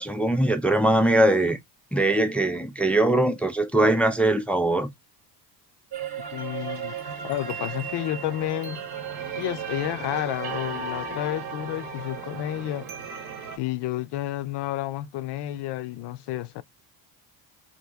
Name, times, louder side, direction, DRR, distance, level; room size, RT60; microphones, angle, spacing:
voice 1, 0.0-1.6 1.9-4.9, right 1 dB, 5° left, 0.3 m, -21 dB
sound 1, 5.9-13.6, right 6 dB, 60° right, 1.0 m, -35 dB
voice 2, 6.3-6.9 7.2-8.8 9.3-12.9 13.6-16.6, left 14 dB, 65° left, 0.5 m, -30 dB
2.8 x 2.6 x 3.4 m
cardioid pair, 95°, 44 cm